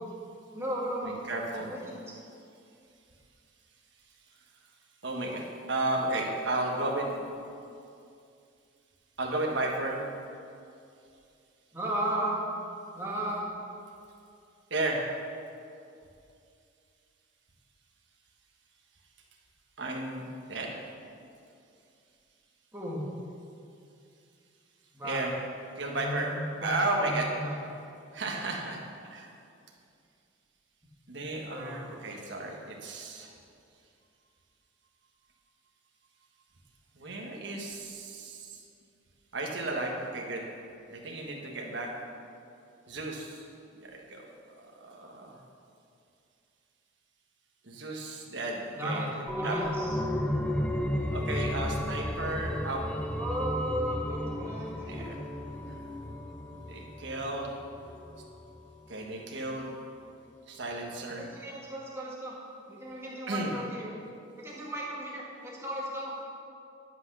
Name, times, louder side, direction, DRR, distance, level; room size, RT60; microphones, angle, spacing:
voice 1, 0.5-1.2 1.6-2.2 11.7-12.4 12.9-13.5 22.7-23.1 24.9-25.2 25.9-27.6 31.5-32.0 48.8-50.0 53.1-55.1 61.2-62.4 62.7-63.9 64.4-66.1, right 1 dB, 15° right, -5 dB, 1.9 m, -35 dB
voice 2, 1.0-1.7 5.0-7.2 9.2-10.0 14.7-15.0 19.8-20.7 25.0-25.3 25.7-26.3 26.6-27.3 28.1-29.3 31.1-33.3 36.9-38.7 39.3-40.5 40.9-41.9 42.9-43.5 43.8-44.2 44.8-45.4 47.6-49.0 49.4-49.6 51.1-52.9 54.9-55.2 55.7-55.8 56.6-57.5 58.9-59.7 60.5-61.3 63.3-63.5, right 2 dB, 65° right, -1 dB, 1.4 m, -33 dB
sound 1, 49.3-58.6 59.0-59.1, left 1 dB, 5° left, 0.4 m, -34 dB
11.0 x 6.1 x 6.1 m, 2.5 s
head